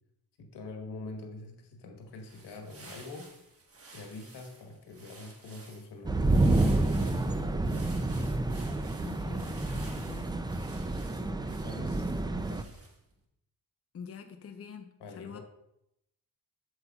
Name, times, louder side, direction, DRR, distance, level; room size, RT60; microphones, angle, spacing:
voice 1, 0.4-3.3 3.9-7.9 10.5-10.8 11.2-12.6 15.0-15.4, left 2 dB, 85° left, 3 dB, 1.3 m, -45 dB
sound 1, 2.1-13.1, right 3 dB, 35° right, 1.4 m, -53 dB
sound 2, 6.0-12.6, right 2 dB, 10° right, 0.4 m, -29 dB
voice 2, 9.0-10.4 13.9-15.4, left 6 dB, 35° left, 6 dB, 0.7 m, -45 dB
7.9 x 6.9 x 2.3 m, 0.82 s
cardioid pair, 85°, 39 cm